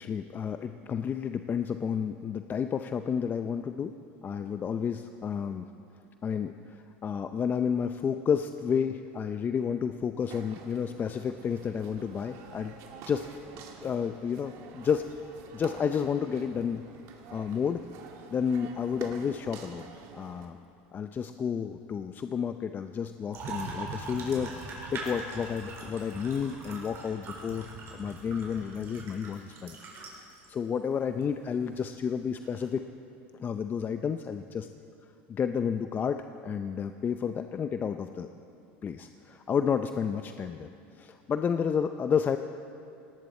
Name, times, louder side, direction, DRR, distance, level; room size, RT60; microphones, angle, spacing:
voice 1, 0.0-3.9 4.2-5.7 6.2-12.8 13.1-13.3 13.6-16.8 17.3-17.8 18.3-19.9 20.1-20.6 20.9-24.5 24.9-27.7 27.9-29.8 30.1-32.8 33.4-34.7 35.3-38.3 38.8-40.7 41.0-42.4, left 7 dB, 30° left, 9 dB, 0.6 m, -31 dB
sound 1, 10.2-20.5, right 6 dB, 60° right, 2.1 m, -49 dB
sound 2, 23.3-30.5 31.2-31.3 32.4-32.7, right 3 dB, 45° right, 4.5 m, -41 dB
18.0 x 18.0 x 4.3 m, 2.6 s
supercardioid pair, 100°, 6 cm